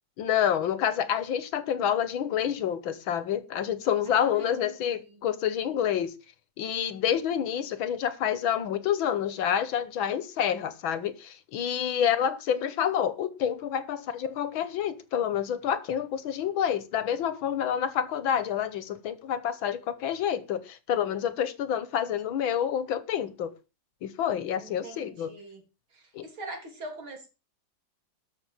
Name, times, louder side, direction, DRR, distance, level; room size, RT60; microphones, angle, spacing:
voice 1, 0.2-6.1 6.6-23.5 24.0-25.3 26.2-26.3, left 9 dB, 80° left, 1.9 m, -28 dB
voice 2, 4.1-5.2 12.0-12.1 12.6-12.7 24.6-25.6 25.9-27.3, right 2 dB, 90° right, 4.3 m, -43 dB
12.5 x 6.3 x 7.0 m
omnidirectional pair, 2.2 m